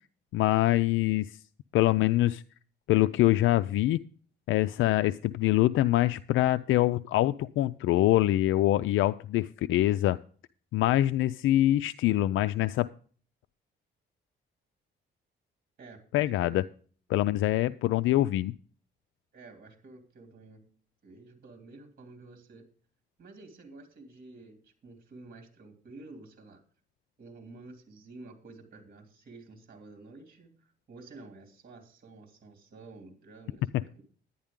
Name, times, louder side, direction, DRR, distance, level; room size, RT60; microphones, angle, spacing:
voice 1, 0.3-1.4 1.7-2.4 2.9-4.0 4.5-10.2 10.7-12.9 16.1-16.6 17.1-18.5, left 15 dB, 80° left, 14 dB, 0.4 m, -24 dB
voice 2, 15.8-16.6 19.3-20.7 21.0-22.6 23.2-26.6 27.2-34.0, right 3 dB, 50° right, 5 dB, 2.8 m, -50 dB
11.0 x 10.5 x 3.7 m, 0.43 s
cardioid pair, 90°, 20 cm